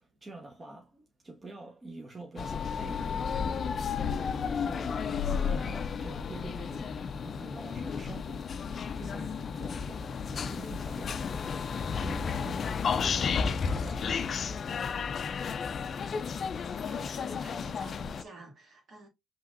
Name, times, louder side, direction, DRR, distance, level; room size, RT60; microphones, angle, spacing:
voice 1, 0.0-5.1 5.4-8.5 8.9-11.5 12.0-14.5, right 2 dB, 30° right, 0.9 m, -46 dB
sound 1, 2.4-18.2, left 6 dB, 50° left, 0.4 m, -32 dB
voice 2, 16.9-19.1, right 3 dB, 55° right, 1.9 m, -52 dB
5.6 x 3.0 x 2.5 m
cardioid pair, 90°, 0 cm